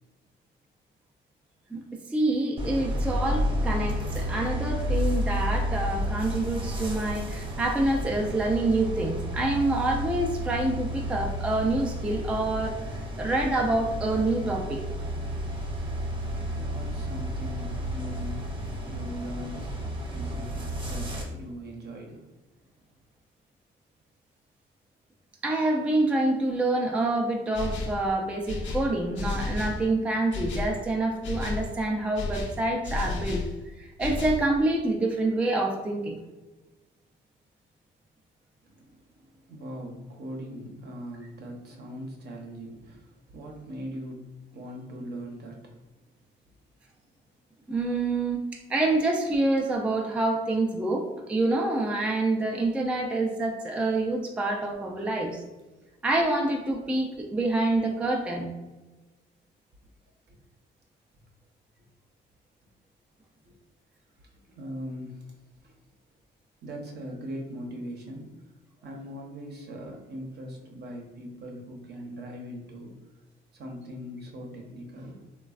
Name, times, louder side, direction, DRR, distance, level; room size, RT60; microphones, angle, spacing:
voice 1, 1.7-14.8 25.4-33.4 33.7-36.2 47.7-55.4 56.0-58.5, right 2 dB, 5° right, 0 dB, 0.3 m, -27 dB
sound 1, 2.6-21.2, equal, 25° right, 0.9 m, -31 dB
voice 2, 16.5-18.5 18.8-22.3 38.6-45.8 60.3-60.4 61.8-61.9 63.4-63.6 64.4-65.3 65.6-65.8 66.6-68.4 68.8-73.0 73.5-75.2, equal, 55° right, 1 dB, 0.7 m, -40 dB
sound 2, 27.5-28.0 28.5-29.8 30.3-30.7 31.2-31.7 32.1-33.5 34.0-34.5, left 3 dB, 70° left, 0.6 m, -32 dB
3.2 x 2.2 x 2.4 m, 1.1 s
cardioid pair, 90°, 20 cm